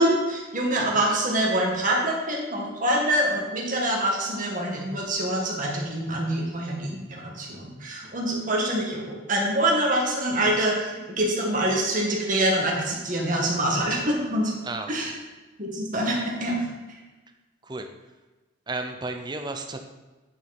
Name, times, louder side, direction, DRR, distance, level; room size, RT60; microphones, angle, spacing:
voice 1, 0.0-9.0 9.3-14.5 14.9-15.1 15.6-16.6, right 1 dB, 40° right, -2 dB, 1.9 m, -25 dB
voice 2, 18.7-19.8, right 3 dB, 20° right, 5 dB, 0.7 m, -32 dB
9.7 x 6.1 x 4.3 m, 1.2 s
head